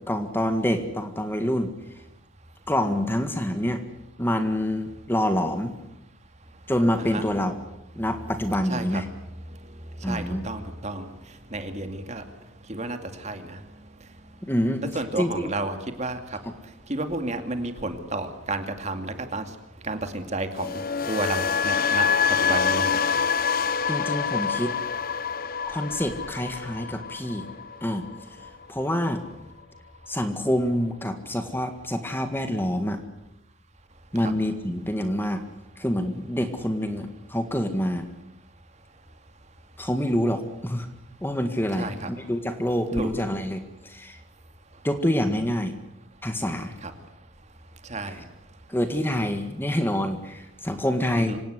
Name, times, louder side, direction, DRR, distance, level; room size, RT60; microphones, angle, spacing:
voice 1, 0.0-1.7 2.7-3.8 4.2-5.7 6.7-7.6 8.0-9.1 10.0-10.5 14.4-14.8 15.2-15.5 16.4-16.5 23.9-24.7 25.7-27.5 27.8-28.1 28.7-29.2 30.1-33.0 34.1-35.4 35.8-38.1 39.8-40.9 41.2-44.2 44.8-45.8 46.2-46.8 48.1-48.2 48.7-51.4, equal, 10° left, 7 dB, 1.8 m, -26 dB
voice 2, 8.7-9.0 10.0-11.1 11.5-12.2 12.7-13.6 14.9-16.2 16.9-19.4 19.8-20.7 21.1-22.1 22.4-23.0 41.8-42.1 43.0-43.1 46.8-46.9 47.9-48.2 51.2-51.4, right 2 dB, 35° right, 7 dB, 2.4 m, -31 dB
sound 1, 20.5-28.6 28.9-29.3, left 6 dB, 45° left, 0.8 m, -26 dB
25.5 x 18.0 x 8.2 m, 0.91 s
head